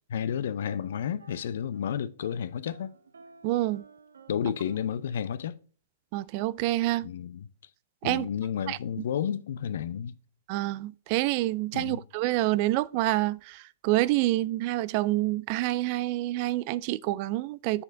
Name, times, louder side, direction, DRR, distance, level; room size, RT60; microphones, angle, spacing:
voice 1, 0.1-2.9 4.3-5.6 7.0-7.5 8.0-10.1 11.7-12.0, left 8 dB, 65° left, 0.5 m, -31 dB
sound 1, 0.6-1.9 2.2-5.2, right 4 dB, 85° right, 0.7 m, -54 dB
voice 2, 3.4-3.8 6.1-7.1 8.0-8.3 8.7-8.8 10.5-17.8, right 17 dB, 45° right, 0.3 m, -27 dB
7.7 x 4.1 x 3.8 m
hypercardioid pair, 120°, 0 cm